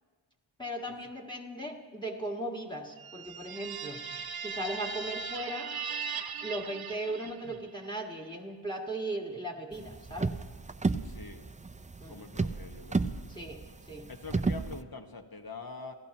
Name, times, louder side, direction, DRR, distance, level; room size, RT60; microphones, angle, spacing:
voice 1, 0.6-4.0 4.4-5.7 6.4-10.3 12.0-12.2 13.3-13.6 13.9-14.1, right 1 dB, 10° left, 1 dB, 1.7 m, -37 dB
sound 1, 3.0-7.7, right 6 dB, 50° right, 0.7 m, -39 dB
voice 2, 7.2-7.6 11.0-11.5 12.1-13.1 14.1-15.9, left 3 dB, 45° left, 5 dB, 1.4 m, -45 dB
sound 2, 9.7-14.8, right 3 dB, 15° right, 0.4 m, -33 dB
27.0 x 15.5 x 3.0 m, 1.4 s
wide cardioid pair, 70°, 49 cm